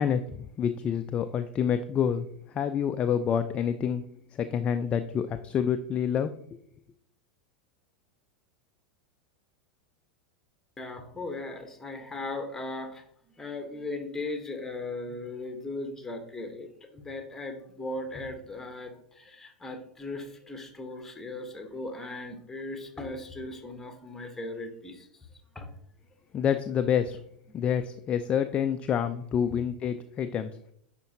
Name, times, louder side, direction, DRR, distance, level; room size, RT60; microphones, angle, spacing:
voice 1, 0.0-4.0 4.3-6.6 26.3-27.2 27.5-30.5, left 8 dB, 25° left, 9 dB, 0.4 m, -28 dB
voice 2, 10.8-13.0 13.4-25.3 25.5-25.7, left 2 dB, 10° left, 5 dB, 1.2 m, -38 dB
10.5 x 4.4 x 2.8 m, 0.69 s
figure-of-eight pair, 85°, 5 cm